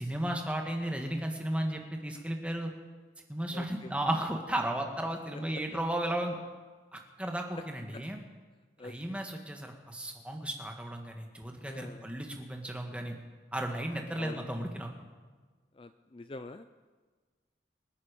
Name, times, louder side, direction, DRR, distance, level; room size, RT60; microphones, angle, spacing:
voice 1, 0.0-2.7 3.3-6.4 6.9-8.2 8.8-13.2 13.5-14.9, right 1 dB, 5° right, 3 dB, 1.6 m, -34 dB
voice 2, 3.5-3.9 8.8-9.2 11.6-12.1 14.2-14.5 15.7-16.7, left 2 dB, 30° left, 10 dB, 0.4 m, -45 dB
26.5 x 9.7 x 5.2 m, 1.4 s
head